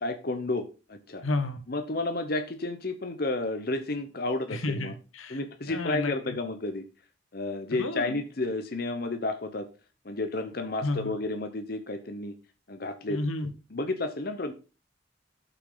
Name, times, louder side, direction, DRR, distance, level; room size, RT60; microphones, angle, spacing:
voice 1, 0.0-0.6 0.9-1.2 1.7-4.9 5.3-6.8 7.3-9.7 10.0-12.3 12.7-13.2 13.7-14.5, left 2 dB, 50° left, 7 dB, 0.9 m, -31 dB
voice 2, 1.2-1.6 4.5-5.4 5.7-6.3 7.8-8.2 10.8-11.1 13.1-13.5, left 2 dB, 90° left, 10 dB, 1.3 m, -31 dB
12.0 x 5.8 x 3.9 m, 0.33 s
head